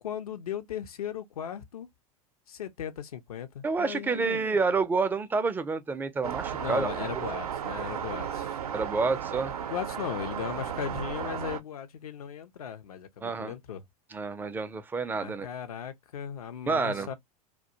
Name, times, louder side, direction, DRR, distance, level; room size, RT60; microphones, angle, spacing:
voice 1, 0.0-1.9 2.5-4.7 6.6-8.6 9.7-13.8 15.1-17.1, left 9 dB, 70° left, 0.5 m, -37 dB
voice 2, 3.6-6.9 8.7-9.5 13.2-13.5 14.1-15.5 16.7-17.1, right 4 dB, 10° right, 0.3 m, -28 dB
sound 1, 6.2-11.6, right 8 dB, 75° right, 0.5 m, -34 dB
2.2 x 2.1 x 2.6 m
figure-of-eight pair, 85°, 19 cm